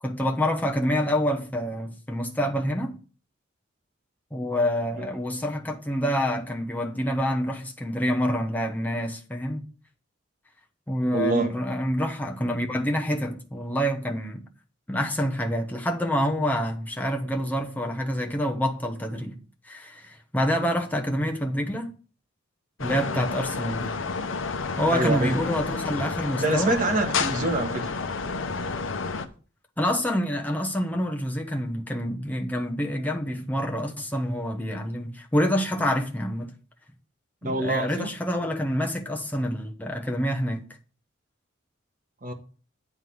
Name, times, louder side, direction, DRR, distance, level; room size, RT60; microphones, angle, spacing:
voice 1, 0.0-3.0 4.3-9.6 10.9-14.4 14.9-21.9 22.8-23.9 24.8-26.8 29.8-36.5 37.4-40.7, equal, 10° left, 0.9 m, -27 dB
voice 2, 11.1-11.5 23.0-23.3 24.9-25.3 26.4-27.9 37.4-38.1 42.2-42.3, right 2 dB, 40° right, 1.6 m, -26 dB
sound 1, 22.8-29.3, left 4 dB, 75° left, 0.8 m, -30 dB
9.5 x 3.7 x 6.2 m
head